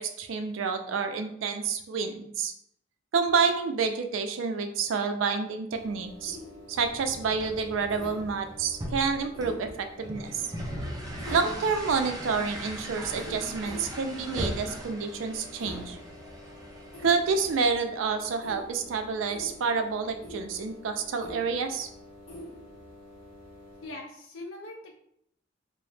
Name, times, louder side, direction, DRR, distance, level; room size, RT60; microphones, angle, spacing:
voice 1, 0.0-2.5 3.1-6.4 6.7-10.4 11.3-16.0 17.0-21.9, right 5 dB, 85° right, 7 dB, 0.4 m, -28 dB
sound 1, 5.7-23.9, left 1 dB, 30° left, 0.9 m, -46 dB
sound 2, 6.7-17.7, equal, 20° right, 0.5 m, -39 dB
voice 2, 23.8-24.9, left 2 dB, 90° left, 1 dB, 0.4 m, -41 dB
2.8 x 2.0 x 3.2 m, 0.72 s
head